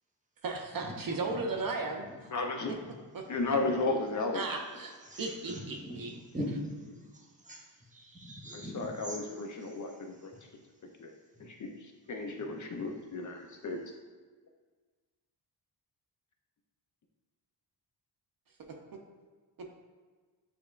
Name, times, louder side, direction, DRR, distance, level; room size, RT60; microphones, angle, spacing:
voice 1, 0.4-2.0 3.1-3.2 4.3-6.1, right 3 dB, 50° right, 3 dB, 0.6 m, -35 dB
voice 2, 2.3-2.7 3.3-4.4 8.5-10.3 11.0-11.1 11.4-13.8, left 3 dB, 45° left, 3 dB, 0.5 m, -34 dB
voice 3, 5.0-7.6 7.9-9.2 9.6-9.7, equal, 15° right, -1 dB, 0.8 m, -41 dB
6.9 x 3.1 x 2.3 m, 1.4 s
wide cardioid pair, 95°, 44 cm